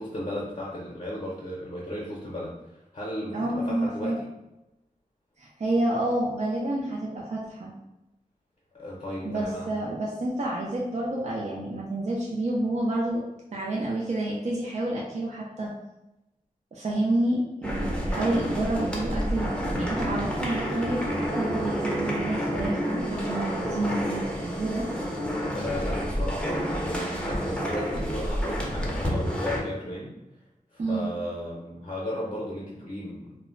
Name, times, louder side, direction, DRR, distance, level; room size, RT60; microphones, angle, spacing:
voice 1, 0.0-4.3 8.7-9.7 25.5-30.1 30.7-33.4, left 1 dB, 45° left, -6 dB, 0.6 m, -35 dB
voice 2, 3.3-4.2 5.4-7.7 9.2-13.2 13.5-15.7 16.7-24.9 30.8-31.1, right 1 dB, 50° right, -4 dB, 0.4 m, -29 dB
sound 1, 17.6-29.6, equal, 5° left, 0.5 m, -29 dB
2.1 x 2.1 x 3.6 m, 0.92 s
wide cardioid pair, 85°, 14 cm